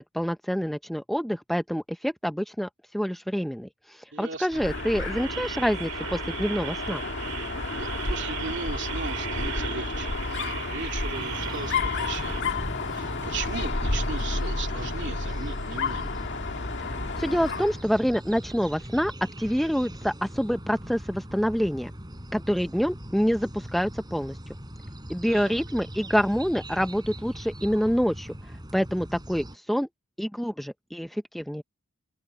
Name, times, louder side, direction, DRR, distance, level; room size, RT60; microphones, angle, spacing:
voice 1, 0.0-2.7 2.9-7.0 16.8-16.9 17.2-19.1 19.4-21.9 22.3-24.4 25.1-28.4 28.7-29.9 30.2-31.6, equal, ahead, 0.5 m, -27 dB
voice 2, 4.1-4.6 7.8-12.6 12.9-16.1 25.2-25.6, right 4 dB, 55° right, 3.0 m, -37 dB
sound 1, 4.4-12.4, right 9 dB, 85° right, 3.2 m, -37 dB
Dog, 4.5-17.8, left 3 dB, 50° left, 2.0 m, -31 dB
sound 2, 11.1-29.6, equal, 20° right, 6.8 m, -41 dB
open air
head